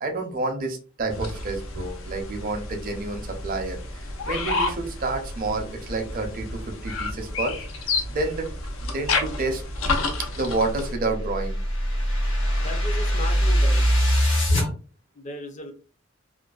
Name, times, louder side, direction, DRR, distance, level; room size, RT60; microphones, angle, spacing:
voice 1, 0.0-3.8 4.2-7.5 8.1-8.5 8.8-9.6 10.3-11.6, right 2 dB, 45° right, 4 dB, 0.5 m, -29 dB
sound 1, 1.1-10.9, left 3 dB, 90° left, 0.6 m, -30 dB
sound 2, 10.6-14.7, equal, 60° left, 1.0 m, -22 dB
voice 2, 12.6-13.9 14.5-14.7 15.1-15.7, left 1 dB, 35° left, 5 dB, 0.5 m, -36 dB
2.5 x 2.2 x 2.3 m, 0.37 s
head